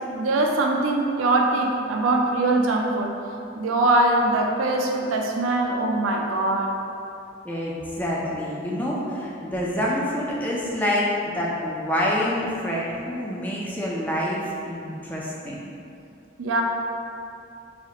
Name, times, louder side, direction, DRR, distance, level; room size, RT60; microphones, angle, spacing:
voice 1, 0.1-3.1 3.6-6.7 16.4-16.6, right 2 dB, 85° right, 1 dB, 0.4 m, -22 dB
voice 2, 7.4-15.7, left 1 dB, 10° left, -5 dB, 0.3 m, -27 dB
4.1 x 2.4 x 2.8 m, 2.6 s
head